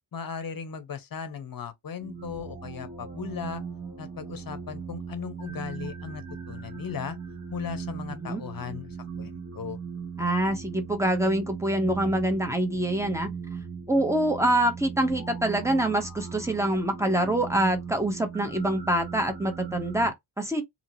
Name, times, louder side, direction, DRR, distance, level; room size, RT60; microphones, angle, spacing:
voice 1, 0.1-3.6 4.0-7.2 7.5-9.8, left 7 dB, 45° left, 0.8 m, -37 dB
sound 1, 2.0-20.1, right 6 dB, 35° right, 1.2 m, -38 dB
voice 2, 8.1-8.4 10.2-13.3 13.9-20.6, right 1 dB, 5° right, 0.9 m, -25 dB
2.8 x 2.8 x 2.7 m
wide cardioid pair, 100°, 46 cm